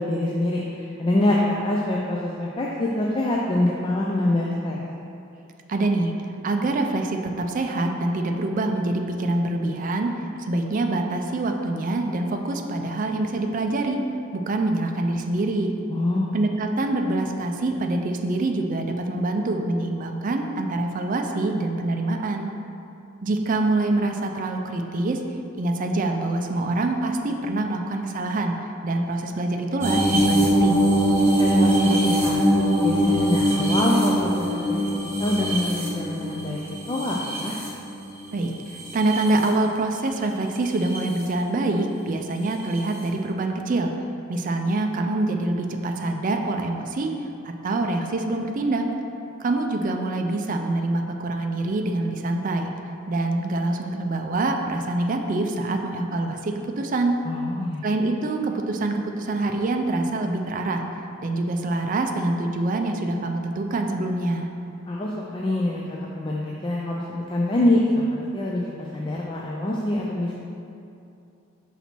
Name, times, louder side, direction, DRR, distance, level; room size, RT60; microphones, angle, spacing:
voice 1, 0.0-4.8 15.9-16.3 31.4-34.8 35.2-36.6 36.9-37.6 57.2-57.8 64.9-68.6 68.9-70.3, left 1 dB, 25° left, -3 dB, 0.4 m, -25 dB
voice 2, 5.7-6.1 6.4-10.1 10.4-14.0 14.3-15.7 16.3-22.5 23.2-25.2 25.5-28.6 28.8-30.9 38.3-43.9 44.3-47.1 47.4-48.9 49.4-52.7 53.1-57.2 57.8-60.8 61.2-64.5, right 2 dB, 40° right, 4 dB, 0.4 m, -25 dB
sound 1, 29.8-38.1 38.7-39.5 40.7-41.0 42.8-42.9, equal, 10° right, 0.9 m, -22 dB
5.8 x 4.0 x 4.4 m, 2.6 s
head